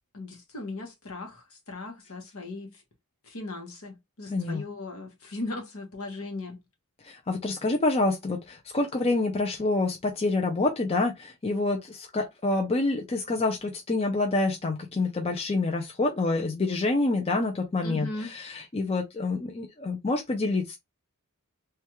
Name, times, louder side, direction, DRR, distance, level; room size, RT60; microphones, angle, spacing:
voice 1, 0.1-2.8 3.3-6.6 17.8-18.3, left 2 dB, 70° left, 1.1 m, -38 dB
voice 2, 4.3-4.6 7.0-20.8, left 2 dB, 25° left, 0.5 m, -27 dB
3.3 x 2.3 x 2.9 m
head